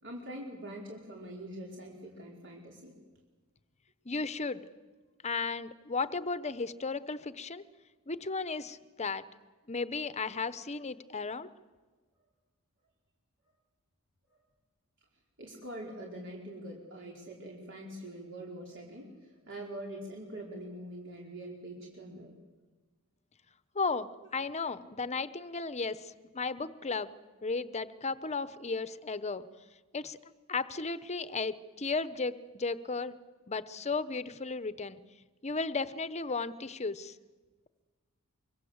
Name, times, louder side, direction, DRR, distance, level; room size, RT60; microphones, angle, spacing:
voice 1, 0.0-2.9 14.3-14.4 15.4-22.3, right 1 dB, 60° right, -1 dB, 4.5 m, -44 dB
voice 2, 4.0-4.6 5.2-7.6 8.1-9.2 9.7-11.5 23.7-27.1 27.4-29.4 29.9-30.2 30.5-33.1 33.5-35.0 35.4-37.1, left 4 dB, 30° left, 14 dB, 0.9 m, -35 dB
25.0 x 24.0 x 8.1 m, 1.3 s
head